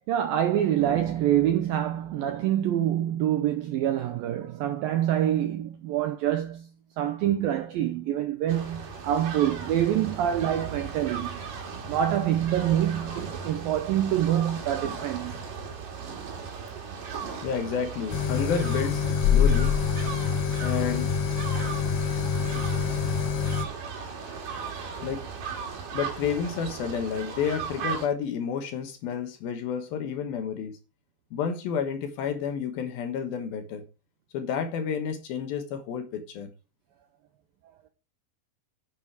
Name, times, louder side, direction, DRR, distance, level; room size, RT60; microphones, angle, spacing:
voice 1, 0.1-6.7 7.0-11.4 11.9-15.4, right 11 dB, 90° right, 2.0 m, -26 dB
sound 1, 8.5-28.1, right 6 dB, 55° right, 3.5 m, -37 dB
voice 2, 17.4-19.7 20.6-21.1 22.1-22.3 24.3-24.4 25.0-25.2 25.9-30.8 31.3-33.8 34.3-36.5, left 7 dB, 65° left, 2.7 m, -30 dB
sound 2, 18.1-23.7, left 7 dB, 85° left, 1.8 m, -25 dB
9.5 x 7.7 x 4.8 m
omnidirectional pair, 5.2 m